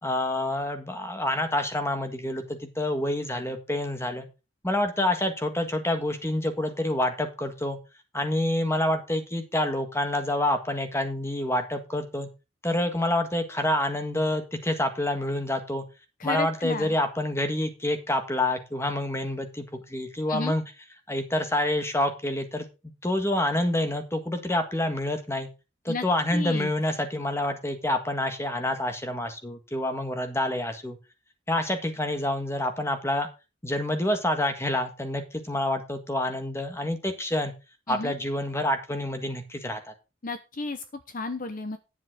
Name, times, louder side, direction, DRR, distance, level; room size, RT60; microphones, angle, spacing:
voice 1, 0.0-4.3 4.6-7.8 8.1-12.3 12.6-15.8 16.2-20.6 21.1-22.6 23.0-25.5 25.8-31.0 31.5-33.3 33.6-37.5 37.9-39.9, left 1 dB, 15° left, 7 dB, 1.6 m, -27 dB
voice 2, 16.2-16.9 20.3-20.6 25.9-26.0 26.3-26.7 37.9-38.1 40.2-41.8, left 3 dB, 45° left, 10 dB, 0.8 m, -33 dB
10.5 x 7.3 x 4.9 m, 0.29 s
head